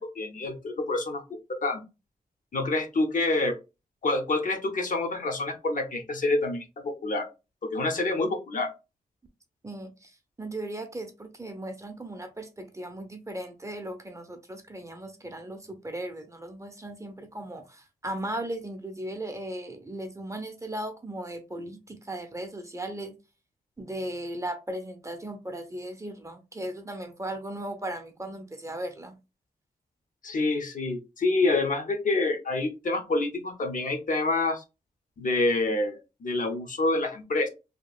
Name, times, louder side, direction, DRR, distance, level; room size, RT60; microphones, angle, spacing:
voice 1, 0.0-1.8 2.5-3.6 4.0-7.3 7.6-8.7 30.2-34.6 35.2-37.5, left 2 dB, 55° left, 0.7 m, -27 dB
voice 2, 9.6-23.1 23.8-29.1, right 1 dB, 20° right, 0.6 m, -37 dB
2.8 x 2.3 x 2.3 m
cardioid pair, 70°, 16 cm